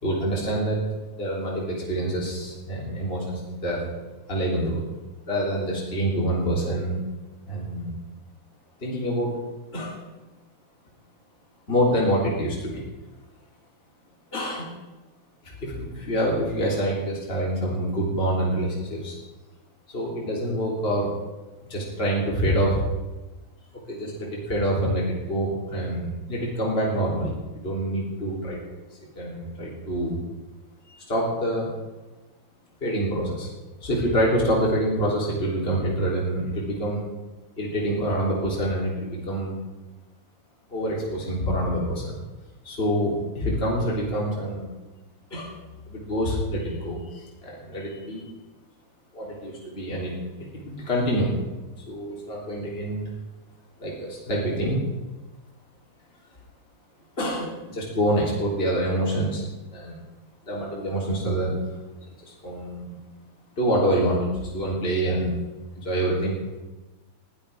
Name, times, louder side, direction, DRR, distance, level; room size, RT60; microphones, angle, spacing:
voice 1, 0.0-0.8 1.2-3.9 4.3-4.9 5.3-7.0 7.5-8.0 8.8-9.4 9.7-10.0 11.7-12.8 14.3-14.7 15.6-19.1 19.9-21.1 21.7-22.8 23.7-28.6 29.2-30.2 31.1-31.7 32.8-33.5 33.8-37.0 37.6-39.6 40.7-42.2 42.6-44.6 45.3-45.6 45.9-48.3 49.1-50.1 50.4-51.4 51.9-53.0 53.8-54.8 57.2-59.4 59.7-59.9 60.5-61.5 62.4-63.0 63.6-65.4 65.7-66.4, right 1 dB, 25° left, -4 dB, 3.7 m, -26 dB
20.0 x 14.5 x 3.6 m, 1.1 s
omnidirectional pair, 2.4 m